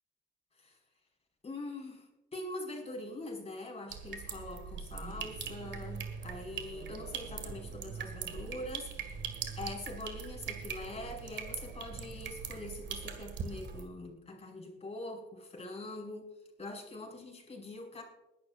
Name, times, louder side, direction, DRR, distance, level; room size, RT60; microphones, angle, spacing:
voice 1, 1.4-9.2 9.6-16.3 16.6-18.0, left 2 dB, 30° left, 0 dB, 5.3 m, -43 dB
sound 1, 3.9-13.8, right 6 dB, 65° right, 1.9 m, -41 dB
21.5 x 12.5 x 2.5 m, 1.0 s
cardioid pair, 90°, 20 cm